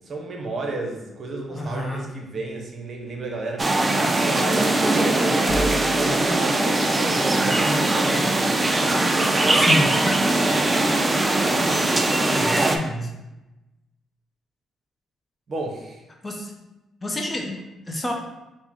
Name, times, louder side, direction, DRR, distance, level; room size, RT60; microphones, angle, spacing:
voice 1, 0.0-5.6 6.0-9.0 9.3-11.8 15.5-16.0, right 2 dB, 45° right, 1 dB, 0.8 m, -33 dB
voice 2, 1.5-2.1 9.5-10.1 12.3-13.1 16.2-16.5 17.0-18.1, left 1 dB, 20° left, 1 dB, 0.6 m, -28 dB
sound 1, 3.6-12.8, right 2 dB, 20° right, 0.4 m, -21 dB
sound 2, 5.5-6.4, equal, 70° left, 0.6 m, -31 dB
4.6 x 2.1 x 3.6 m, 0.99 s
cardioid pair, 90°, 0 cm